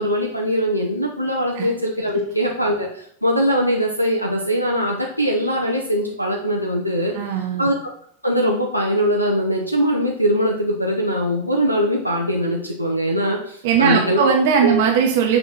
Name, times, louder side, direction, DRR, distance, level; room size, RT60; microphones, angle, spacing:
voice 1, 0.0-7.1 7.6-7.8 8.2-14.3 14.6-14.8, equal, 90° left, 0 dB, 0.9 m, -21 dB
voice 2, 7.1-7.7 13.6-15.4, right 6 dB, 50° right, 1 dB, 1.3 m, -18 dB
6.9 x 4.7 x 5.5 m, 0.65 s
figure-of-eight pair, 90°, 0 cm